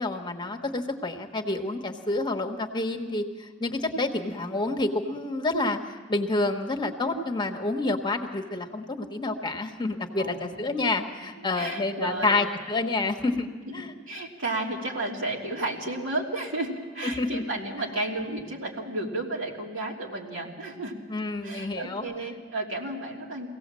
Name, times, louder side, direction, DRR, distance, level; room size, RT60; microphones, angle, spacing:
voice 1, 0.0-13.5 13.7-13.9 17.2-17.4 21.1-22.0, left 2 dB, 25° left, 3 dB, 1.3 m, -28 dB
voice 2, 10.2-10.6 11.5-12.4 13.7-13.8 14.1-20.9 21.4-23.5, right 2 dB, 80° right, -1 dB, 3.2 m, -32 dB
23.5 x 17.0 x 7.6 m, 1.4 s
head